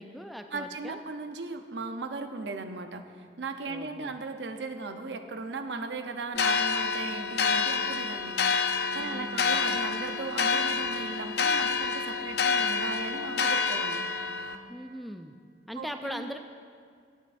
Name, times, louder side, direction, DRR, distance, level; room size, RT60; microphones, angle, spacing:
voice 1, 0.0-1.0 3.7-4.2 9.0-9.5 14.7-15.3 15.7-16.4, equal, ahead, 6 dB, 0.3 m, -40 dB
voice 2, 0.5-8.4 8.9-14.0 15.8-16.3, right 3 dB, 85° right, 7 dB, 0.7 m, -37 dB
sound 1, 6.3-14.5, left 5 dB, 65° left, 0.6 m, -28 dB
17.0 x 8.3 x 2.6 m, 2.2 s
head